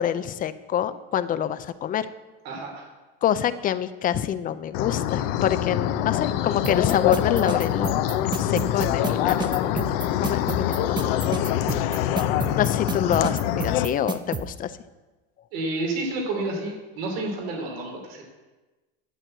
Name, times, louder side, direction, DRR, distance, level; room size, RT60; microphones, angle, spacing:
voice 1, 0.0-2.1 3.2-8.0 8.3-11.4 12.6-14.7, left 10 dB, 30° left, 14 dB, 0.4 m, -26 dB
voice 2, 2.4-2.9 15.5-18.2, right 2 dB, 85° right, 0 dB, 2.9 m, -30 dB
sound 1, 4.7-13.9, left 11 dB, 75° left, 0.7 m, -25 dB
sound 2, 6.6-14.4, right 5 dB, 15° right, 0.6 m, -30 dB
11.5 x 4.6 x 7.7 m, 1.2 s
supercardioid pair, 125°, 30 cm